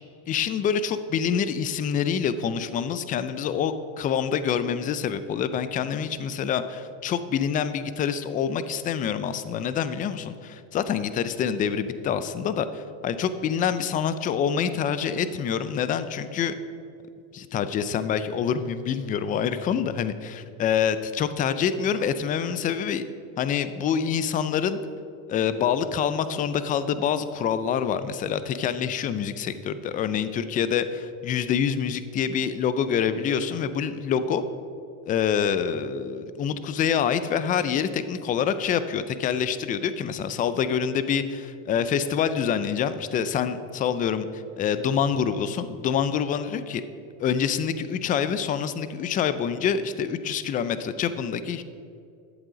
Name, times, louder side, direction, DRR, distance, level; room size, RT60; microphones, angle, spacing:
voice 1, 0.3-16.5 17.3-23.0 23.4-24.8 25.3-34.4 35.1-46.8 47.2-51.6, left 7 dB, 20° left, 13 dB, 0.4 m, -26 dB
11.0 x 7.5 x 5.0 m, 2.5 s
supercardioid pair, 120°, 44 cm